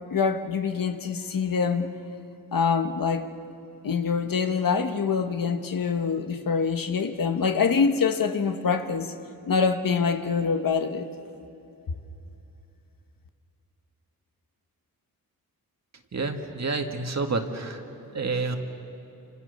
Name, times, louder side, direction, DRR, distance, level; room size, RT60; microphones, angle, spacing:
voice 1, 0.1-1.9 2.5-3.3 3.8-9.1 9.5-11.1, left 5 dB, 65° left, 7 dB, 1.4 m, -25 dB
voice 2, 16.1-18.6, right 3 dB, 45° right, 5 dB, 2.1 m, -29 dB
28.5 x 27.5 x 6.8 m, 2.8 s
wide cardioid pair, 110°, 37 cm